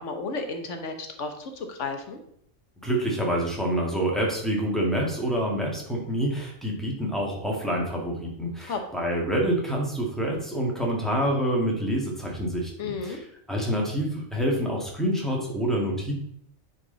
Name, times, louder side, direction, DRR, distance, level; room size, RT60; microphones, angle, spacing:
voice 1, 0.0-2.2 8.6-8.8 12.8-13.2, left 4 dB, 65° left, 6 dB, 1.2 m, -33 dB
voice 2, 2.8-13.2 13.5-16.2, right 1 dB, ahead, -2 dB, 1.8 m, -27 dB
9.4 x 4.2 x 3.9 m, 0.71 s
omnidirectional pair, 1.4 m